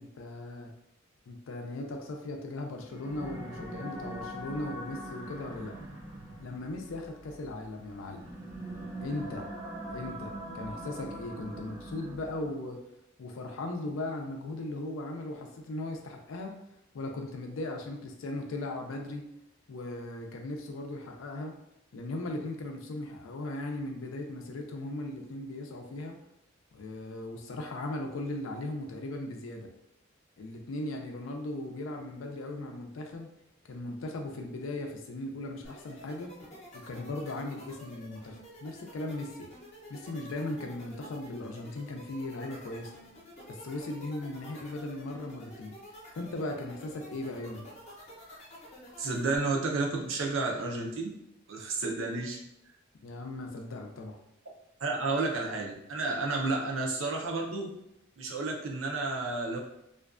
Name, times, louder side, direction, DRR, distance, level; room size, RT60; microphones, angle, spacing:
voice 1, 0.2-0.7 1.3-5.8 6.4-8.2 9.0-9.5 9.9-12.8 13.2-16.6 16.9-19.3 19.7-21.6 21.9-26.2 26.7-29.7 30.4-33.3 33.7-36.3 36.7-39.5 39.9-42.9 43.5-45.7 46.1-47.7 53.0-54.2, left 2 dB, 85° left, 3 dB, 0.4 m, -38 dB
sound 1, 2.8-12.7, right 1 dB, 15° right, 0.4 m, -42 dB
sound 2, 35.6-49.4, left 1 dB, 35° left, 0.6 m, -49 dB
voice 2, 49.0-51.1 51.5-52.4 54.8-57.7 58.2-59.6, right 3 dB, 80° right, 0 dB, 0.5 m, -31 dB
2.4 x 2.2 x 2.4 m, 0.80 s
head